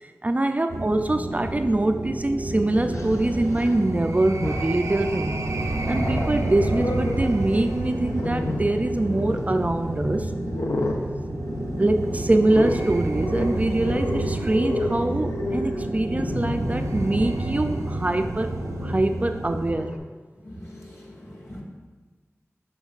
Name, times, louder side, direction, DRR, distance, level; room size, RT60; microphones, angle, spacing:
voice 1, 0.2-5.4 5.9-10.3 11.8-18.5 18.8-19.9, right 2 dB, 30° right, 6 dB, 0.3 m, -24 dB
sound 1, 0.7-19.7, right 2 dB, 90° right, 0.5 m, -29 dB
Growling, 1.7-1.8 2.8-3.8 4.3-5.0 5.4-20.0, left 2 dB, 80° left, 0.6 m, -33 dB
voice 2, 20.4-21.6, left 1 dB, 65° left, -5 dB, 2.0 m, -42 dB
10.5 x 4.6 x 2.4 m, 1.4 s
wide cardioid pair, 60°, 5 cm